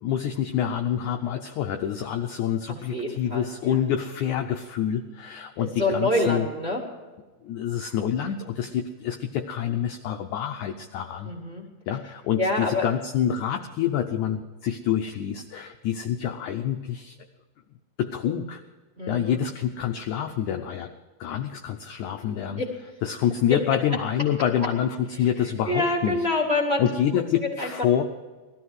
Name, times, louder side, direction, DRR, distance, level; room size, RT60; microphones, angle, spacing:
voice 1, 0.0-6.5 7.4-11.3 11.9-17.2 18.0-18.6 19.1-20.9 21.2-22.6 23.0-26.2 26.8-28.0, left 9 dB, 85° left, 5 dB, 1.7 m, -27 dB
voice 2, 2.7-3.8 5.6-6.8 11.2-11.6 12.4-12.8 19.0-19.4 22.6-22.7 25.6-26.8 27.3-27.7, left 2 dB, 25° right, 1 dB, 1.6 m, -26 dB
19.0 x 13.5 x 4.8 m, 1.3 s
omnidirectional pair, 4.4 m